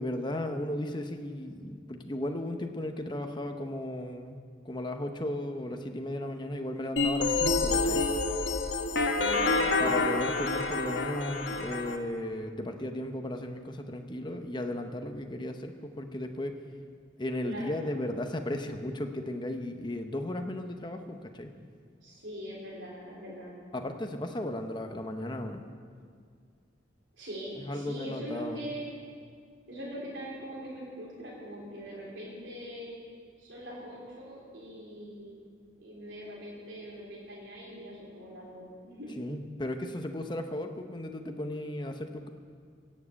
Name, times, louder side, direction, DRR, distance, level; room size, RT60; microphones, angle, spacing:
voice 1, 0.0-8.1 9.8-16.6 17.2-21.5 23.7-25.6 27.6-28.6 39.2-42.3, left 1 dB, 25° left, 5 dB, 0.8 m, -35 dB
sound 1, 7.0-12.0, left 3 dB, 65° left, 1.1 m, -28 dB
voice 2, 9.2-9.6 17.4-17.8 22.0-23.6 27.2-28.9 29.7-33.0 33.4-35.3 35.8-39.2, equal, 70° right, -5 dB, 3.6 m, -42 dB
17.0 x 7.5 x 8.2 m, 2.1 s
head